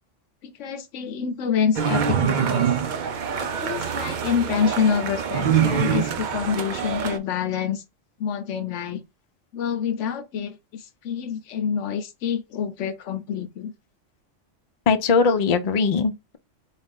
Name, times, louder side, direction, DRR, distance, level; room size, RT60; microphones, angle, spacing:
voice 1, 0.4-2.7 3.4-7.8 8.2-9.0 9.5-13.7, left 7 dB, 80° left, 1.0 m, -27 dB
sound 1, 1.7-7.2, right 7 dB, 55° right, 0.5 m, -24 dB
voice 2, 14.9-16.4, left 5 dB, 45° left, 0.6 m, -21 dB
4.0 x 2.5 x 3.6 m
omnidirectional pair, 1.3 m